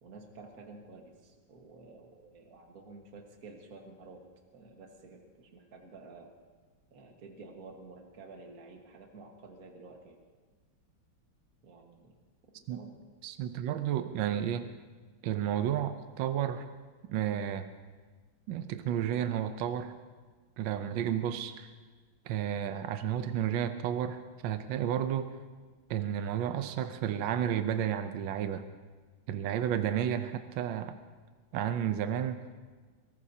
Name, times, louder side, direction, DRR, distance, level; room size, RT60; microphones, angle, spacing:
voice 1, 0.0-4.2 4.5-6.3 6.9-10.2 11.6-12.2 12.5-13.0 13.4-13.5, right 3 dB, 50° right, 2 dB, 1.9 m, -51 dB
voice 2, 13.2-14.7 15.2-16.7 17.1-17.7 18.5-19.9 20.6-21.7 22.3-25.3 25.9-28.6 29.3-31.0 31.5-32.4, right 10 dB, 75° right, 9 dB, 1.4 m, -32 dB
22.5 x 19.0 x 2.8 m, 1.4 s
omnidirectional pair, 2.1 m